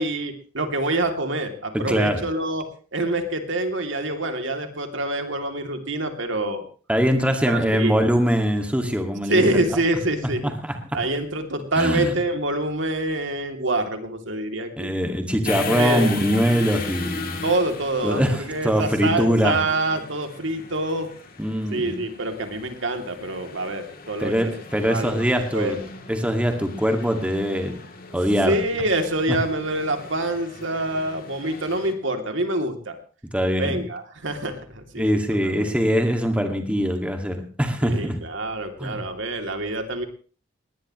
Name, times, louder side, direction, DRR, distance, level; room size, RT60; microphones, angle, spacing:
voice 1, 0.0-2.7 2.9-6.6 7.5-8.0 9.3-10.5 10.9-14.9 15.7-16.1 17.4-21.1 21.7-24.3 24.9-25.2 25.5-25.8 28.4-33.0 33.6-35.2 35.6-35.7 37.8-40.1, right 2 dB, 70° right, 5 dB, 2.9 m, -26 dB
voice 2, 1.7-2.2 6.9-9.4 10.4-11.0 11.8-12.1 14.8-17.5 18.0-19.6 21.4-22.0 24.2-25.8 26.1-27.8 28.1-28.6 29.3-29.4 33.3-33.8 35.0-38.2 38.8-39.0, equal, 5° right, 5 dB, 2.2 m, -22 dB
sound 1, 15.4-31.9, left 4 dB, 50° left, 3.1 m, -37 dB
20.0 x 19.5 x 3.2 m, 0.39 s
head